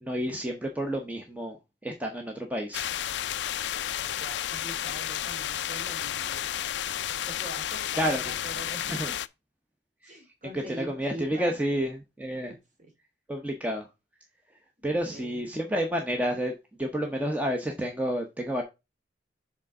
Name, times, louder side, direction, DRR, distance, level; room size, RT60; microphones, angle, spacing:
voice 1, 0.0-2.9 8.0-8.3 8.9-9.1 10.0-10.1 10.5-12.5 13.3-13.9 14.8-16.5 16.8-18.6, equal, 10° right, 0.8 m, -30 dB
sound 1, 2.7-9.3, left 11 dB, 65° left, 0.4 m, -32 dB
voice 2, 4.0-6.8 7.3-9.1 10.0-11.6 12.5-12.9 14.8-15.4, right 1 dB, 40° right, 2.5 m, -44 dB
7.3 x 3.7 x 5.2 m
head